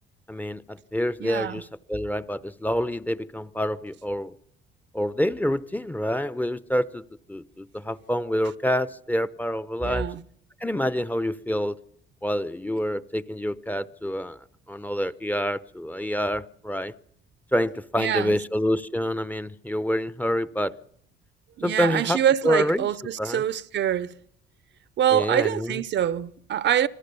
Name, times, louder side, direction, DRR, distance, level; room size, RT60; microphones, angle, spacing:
voice 1, 0.3-4.4 4.9-10.1 10.6-11.8 12.2-16.9 17.5-20.7 21.6-22.9 23.2-23.4 25.1-25.8, equal, 10° left, 0.8 m, -27 dB
voice 2, 1.2-1.6 9.8-10.2 18.0-18.4 21.6-24.1 25.0-26.9, right 10 dB, 65° right, 0.8 m, -25 dB
25.5 x 15.5 x 6.9 m
cardioid pair, 90°, 20 cm